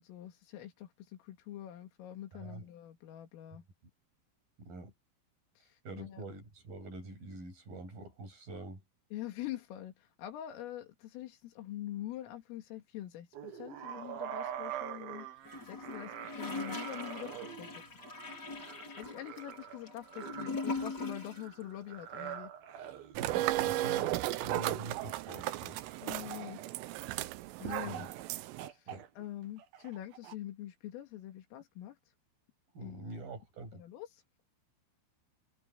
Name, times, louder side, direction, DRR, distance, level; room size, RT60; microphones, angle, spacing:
voice 1, 0.0-3.6 5.6-6.2 8.5-8.6 9.1-15.3 15.7-18.0 19.0-22.5 26.0-26.6 27.6-28.1 28.6-28.9 29.2-32.0 32.8-33.1 33.7-34.2, left 13 dB, 80° left, 4.8 m, -45 dB
voice 2, 2.3-2.7 4.6-4.9 5.8-8.8 23.2-25.8 27.8-28.1 28.9-29.0 32.7-33.8, right 2 dB, 45° right, 9.4 m, -45 dB
sound 1, 13.3-27.4 27.9-28.3 28.6-30.4, right 10 dB, 60° right, 2.9 m, -46 dB
Gurgling / Toilet flush, 15.4-21.5 21.8-21.9, left 4 dB, 25° left, 3.1 m, -41 dB
sound 2, 23.2-28.7, right 16 dB, 80° right, 3.4 m, -35 dB
omnidirectional pair, 5.9 m